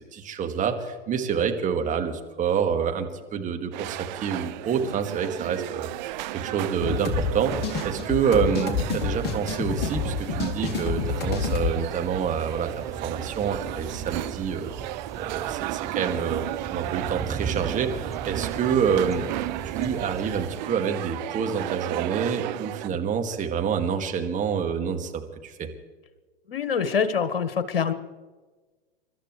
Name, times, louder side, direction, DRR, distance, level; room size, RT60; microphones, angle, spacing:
voice 1, 0.1-14.7 15.2-16.4 16.7-19.3 19.6-25.7, right 7 dB, 25° right, 5 dB, 2.2 m, -27 dB
sound 1, 3.7-22.9, right 16 dB, 50° right, 0.7 m, -34 dB
sound 2, 6.7-20.6, right 5 dB, 10° right, 0.9 m, -38 dB
sound 3, 6.8-11.7, left 5 dB, 35° left, 2.3 m, -28 dB
voice 2, 26.5-27.9, left 6 dB, 75° left, 11 dB, 1.7 m, -25 dB
29.0 x 13.5 x 3.3 m, 1.3 s
hypercardioid pair, 100°, 29 cm